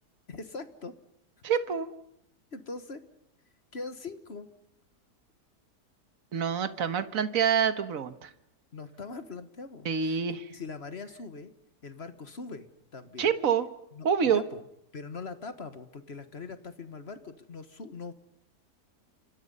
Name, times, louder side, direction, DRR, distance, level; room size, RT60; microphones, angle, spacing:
voice 1, 0.3-0.9 2.5-3.0 3.7-4.5 8.7-10.2 10.5-11.5 11.8-12.7 12.9-13.3 13.9-14.6 14.9-18.1, left 4 dB, 40° left, 10 dB, 1.6 m, -41 dB
voice 2, 1.4-1.9 6.3-8.3 9.8-10.4 13.2-13.7 14.0-14.4, right 7 dB, 55° right, 11 dB, 1.7 m, -26 dB
29.5 x 26.0 x 5.5 m, 0.77 s
omnidirectional pair, 1.8 m